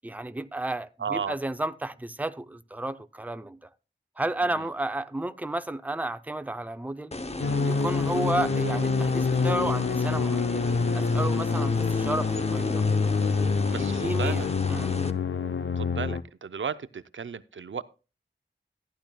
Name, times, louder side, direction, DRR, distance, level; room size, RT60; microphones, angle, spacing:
voice 1, 0.0-3.7 4.2-7.1 7.6-12.8 13.7-14.9, right 2 dB, 10° right, 0.5 m, -32 dB
voice 2, 1.0-1.4 4.4-4.7 13.7-14.5 15.8-17.8, right 6 dB, 75° right, 0.5 m, -34 dB
sound 1, 7.1-15.1, left 2 dB, 30° left, 0.7 m, -35 dB
sound 2, 7.4-16.2, left 4 dB, 75° left, 0.6 m, -26 dB
15.0 x 10.5 x 2.3 m
wide cardioid pair, 70°, 20 cm